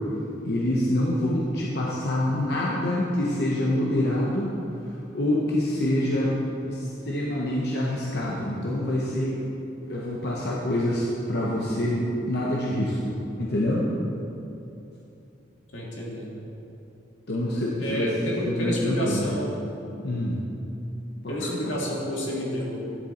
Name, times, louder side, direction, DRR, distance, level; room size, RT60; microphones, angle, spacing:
voice 1, 0.4-4.6 4.8-6.4 6.7-13.9 17.3-18.1 18.4-19.3 20.0-20.4 21.2-21.7, left 1 dB, 55° left, -4 dB, 0.9 m, -26 dB
voice 2, 15.7-16.4 17.8-19.5 21.3-22.8, equal, 85° left, -4 dB, 2.0 m, -30 dB
10.5 x 6.9 x 4.3 m, 2.8 s
head